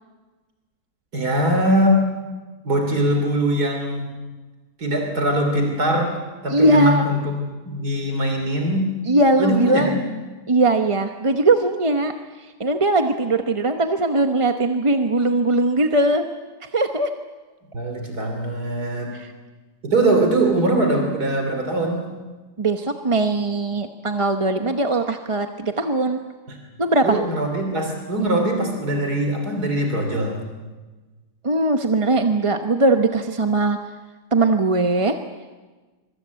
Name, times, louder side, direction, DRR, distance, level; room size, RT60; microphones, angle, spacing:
voice 1, 1.1-2.1 2.7-4.1 4.8-7.3 7.6-9.0 9.4-10.0 17.7-19.1 19.8-22.1 26.5-26.6 27.0-30.4, right 1 dB, 70° right, 3 dB, 3.6 m, -22 dB
voice 2, 6.5-7.1 9.1-10.0 10.5-12.1 12.4-16.2 16.6-17.1 19.1-19.3 22.6-26.2 26.8-27.2 31.4-33.8 34.3-35.2, right 2 dB, 25° right, 6 dB, 0.9 m, -20 dB
26.0 x 23.5 x 8.3 m, 1.3 s
omnidirectional pair, 1.7 m